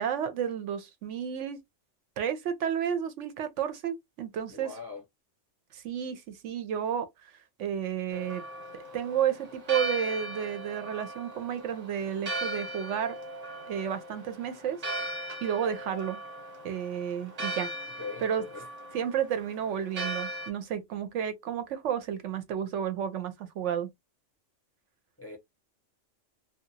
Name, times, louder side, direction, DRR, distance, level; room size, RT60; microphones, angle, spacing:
voice 1, 0.0-1.6 2.2-4.7 5.7-7.3 7.6-8.4 8.9-13.1 13.7-15.1 15.4-16.2 16.6-17.7 18.2-18.4 18.9-23.9, right 9 dB, 75° right, 0.9 m, -32 dB
voice 2, 4.5-5.0 18.0-18.7 25.2-25.4, left 4 dB, 15° left, 0.5 m, -41 dB
Church bell, 8.1-20.5, right 1 dB, 35° right, 1.0 m, -38 dB
2.8 x 2.3 x 2.6 m
omnidirectional pair, 1.3 m